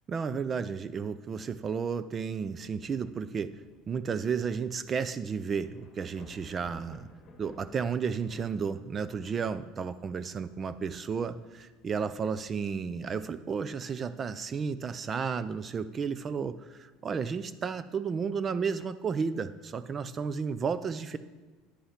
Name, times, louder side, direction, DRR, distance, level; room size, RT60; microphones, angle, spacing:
voice 1, 0.1-3.5 3.9-7.1 7.4-21.2, right 6 dB, 25° right, 14 dB, 0.3 m, -33 dB
Thunder / Rain, 2.7-13.4, left 3 dB, 30° left, 1.5 m, -58 dB
9.9 x 5.6 x 5.7 m, 1.3 s
supercardioid pair, 135°, 0 cm